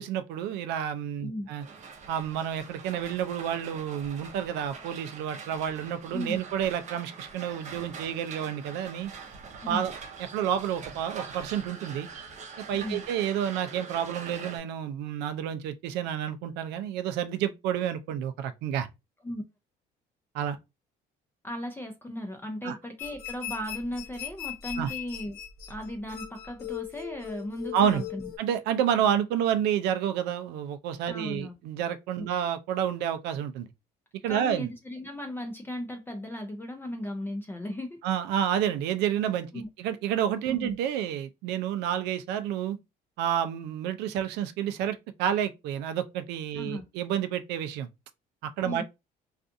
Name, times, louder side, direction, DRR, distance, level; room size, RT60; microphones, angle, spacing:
voice 1, 0.0-1.6 2.1-9.1 9.7-9.9 10.3-12.1 12.7-18.9 20.3-20.6 22.6-22.8 24.8-24.9 27.7-28.0 28.4-33.7 34.2-34.7 38.0-39.5 39.8-42.8 43.2-47.9 48.4-48.8, right 9 dB, 90° right, 0.4 m, -29 dB
sound 1, 1.6-14.6, right 5 dB, 45° right, 0.6 m, -44 dB
voice 2, 21.4-25.4 25.7-28.3 31.1-31.5 34.3-38.0 39.5-39.7 40.5-40.7 46.5-46.9 48.6-48.8, left 1 dB, 15° left, 0.4 m, -36 dB
sound 2, 23.0-28.4, left 12 dB, 65° left, 0.8 m, -39 dB
2.5 x 2.4 x 2.5 m
cardioid pair, 110°, 17 cm